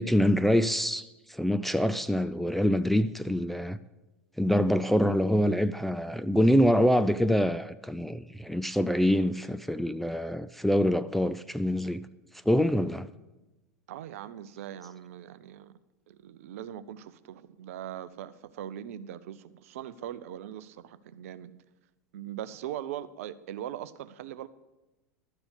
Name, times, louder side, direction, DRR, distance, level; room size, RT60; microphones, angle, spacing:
voice 1, 0.0-3.8 4.4-12.1 12.5-13.1, equal, ahead, 0.3 m, -25 dB
voice 2, 13.9-15.7 16.1-21.5 22.1-24.5, right 11 dB, 55° right, 0.6 m, -40 dB
11.5 x 7.0 x 8.1 m
figure-of-eight pair, 85°, 9 cm